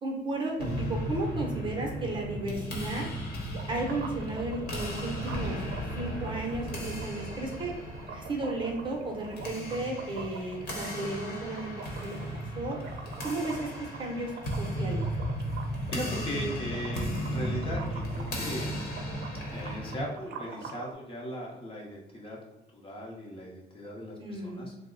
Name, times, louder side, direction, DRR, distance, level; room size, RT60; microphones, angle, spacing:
voice 1, 0.0-3.1 3.7-5.6 5.9-7.7 8.1-11.7 12.0-12.8 13.2-13.7 14.0-15.0 24.2-24.7, right 2 dB, 30° right, 0 dB, 0.7 m, -34 dB
sound 1, 0.6-20.0, equal, 65° left, 0.9 m, -35 dB
sound 2, 3.5-20.9, right 5 dB, 70° right, 0.5 m, -45 dB
voice 2, 15.6-18.7 19.5-22.4 22.7-24.9, equal, 30° left, -2 dB, 0.7 m, -38 dB
3.0 x 2.0 x 3.7 m, 1.0 s
cardioid pair, 150°, 17 cm